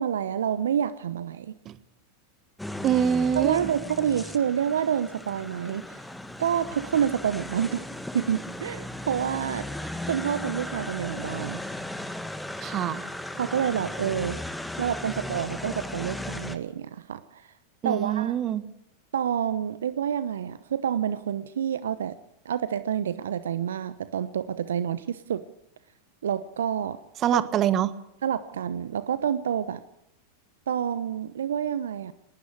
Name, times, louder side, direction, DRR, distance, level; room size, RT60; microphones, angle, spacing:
voice 1, 0.0-1.5 3.3-5.8 6.4-7.9 8.1-9.7 10.1-11.6 13.4-14.4 14.8-17.5 17.8-18.3 19.1-22.2 22.4-25.4 26.2-27.0 27.3-27.4 28.2-29.8 30.7-32.1, right 9 dB, 70° right, 15 dB, 0.9 m, -28 dB
sound 1, 2.6-16.6, left 1 dB, 5° left, 1.7 m, -36 dB
voice 2, 2.8-3.6 12.6-13.0 17.8-18.6 27.2-27.9, right 9 dB, 35° right, 15 dB, 1.5 m, -24 dB
20.0 x 18.5 x 8.6 m, 0.80 s
figure-of-eight pair, 90°, 0 cm